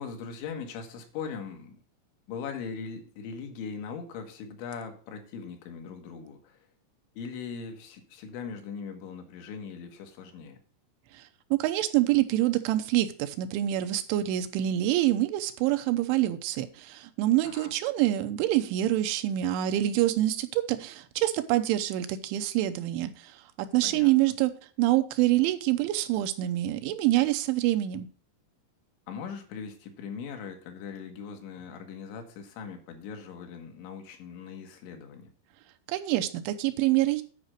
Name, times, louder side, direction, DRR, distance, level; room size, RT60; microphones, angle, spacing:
voice 1, 0.0-1.8 2.3-6.6 7.2-10.6 17.4-17.7 23.8-24.1 29.1-35.3, left 6 dB, 80° left, 3.8 m, -40 dB
voice 2, 11.1-24.5 24.8-28.1 35.9-37.2, right 14 dB, 85° right, 3.2 m, -26 dB
9.6 x 5.0 x 6.5 m
omnidirectional pair, 5.3 m